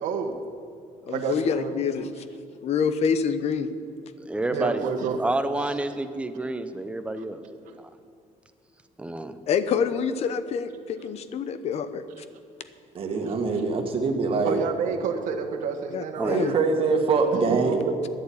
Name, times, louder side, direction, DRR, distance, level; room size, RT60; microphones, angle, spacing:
voice 1, 0.0-0.3 1.1-1.7 4.5-5.2 14.4-16.5 17.5-17.9, right 6 dB, 70° right, 3 dB, 1.4 m, -29 dB
voice 2, 1.0-2.1 2.6-3.7 9.5-12.0 15.9-16.6, left 6 dB, 55° left, 11 dB, 0.9 m, -26 dB
voice 3, 4.3-4.9 5.2-7.4 9.0-9.4 16.2-16.4, right 2 dB, 10° right, 9 dB, 0.7 m, -29 dB
voice 4, 12.9-14.6 16.2-17.8, right 4 dB, 45° right, 3 dB, 1.9 m, -24 dB
12.5 x 11.0 x 8.7 m, 2.5 s
cardioid pair, 160°, 13 cm